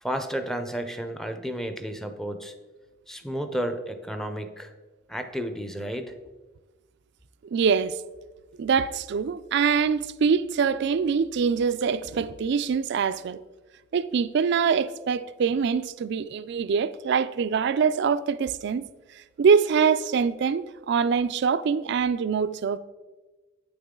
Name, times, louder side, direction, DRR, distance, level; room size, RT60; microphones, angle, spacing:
voice 1, 0.0-2.5 3.1-4.7 5.1-6.1, equal, ahead, 0.5 m, -32 dB
voice 2, 7.5-8.0 8.6-13.4 13.9-18.8 19.4-22.8, right 6 dB, 60° right, 0.4 m, -24 dB
9.1 x 6.9 x 3.7 m
head